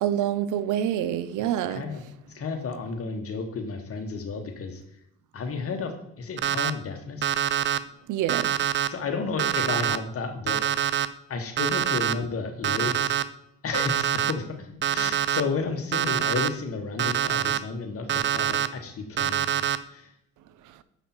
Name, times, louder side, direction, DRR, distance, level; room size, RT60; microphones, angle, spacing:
voice 1, 0.0-1.8 8.1-8.5, right 11 dB, 85° right, 0.6 m, -26 dB
voice 2, 1.7-2.0 2.3-4.8 5.3-7.3 8.9-10.6 11.3-13.1 13.6-19.4 19.9-20.1, left 4 dB, 50° left, 1.4 m, -32 dB
Alarm, 6.4-6.7 7.2-7.8 8.3-8.9 9.4-10.0 10.5-11.1 11.6-12.1 12.6-13.2 13.7-14.3 14.8-15.4 15.9-16.5 17.0-17.6 18.1-18.7 19.2-19.8, right 9 dB, 40° right, 0.4 m, -25 dB
6.9 x 5.6 x 4.3 m
cardioid pair, 90°, 30 cm